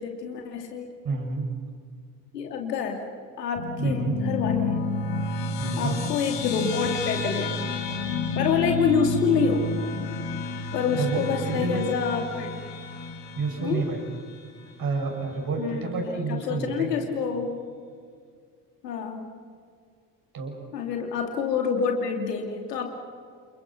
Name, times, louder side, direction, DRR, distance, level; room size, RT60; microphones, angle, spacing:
voice 1, 0.0-0.9 2.3-3.0 3.4-4.8 5.8-7.6 8.3-9.7 10.7-12.5 13.6-13.9 15.6-17.6 18.8-19.3 20.7-22.9, left 6 dB, 75° left, 3 dB, 2.9 m, -27 dB
voice 2, 1.0-1.5 3.8-4.3 5.6-6.0 11.0-12.0 13.3-14.1 14.8-16.9 20.3-20.6, right 4 dB, 45° right, 2 dB, 7.3 m, -29 dB
sound 1, 3.6-14.3, left 3 dB, 60° left, 3.0 m, -30 dB
29.5 x 28.5 x 6.2 m, 2.1 s
figure-of-eight pair, 45°, 49 cm